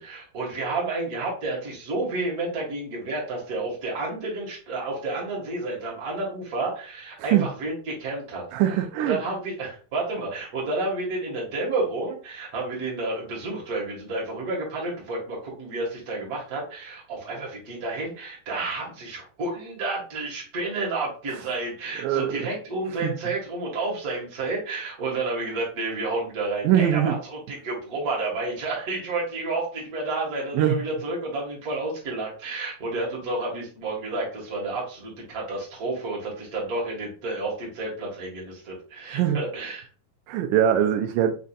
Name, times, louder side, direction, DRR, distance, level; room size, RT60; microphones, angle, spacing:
voice 1, 0.0-8.4 9.0-39.8, right 2 dB, 35° right, 1.7 m, -30 dB
voice 2, 8.5-9.2 22.0-22.5 23.0-23.1 26.6-27.2 30.5-30.8 39.1-39.4 40.3-41.4, right 10 dB, 90° right, 2.2 m, -22 dB
5.2 x 4.1 x 2.4 m
omnidirectional pair, 3.8 m